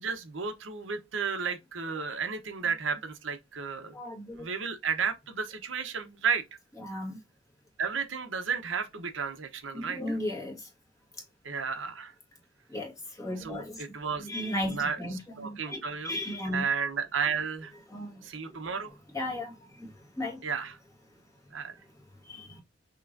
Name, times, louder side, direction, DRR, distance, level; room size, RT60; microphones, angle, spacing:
voice 1, 0.0-3.9 4.4-6.4 7.8-10.2 11.4-12.1 13.4-14.3 14.7-16.2 16.5-17.7 18.2-18.9 20.4-20.8 21.5-21.8, right 6 dB, 80° right, 0.9 m, -33 dB
voice 2, 3.9-4.5 6.8-7.2 9.7-10.7 12.7-13.8 14.2-16.7 17.9-18.6 19.1-20.4 22.2-22.6, left 1 dB, 15° left, 1.6 m, -36 dB
5.8 x 3.1 x 2.6 m
head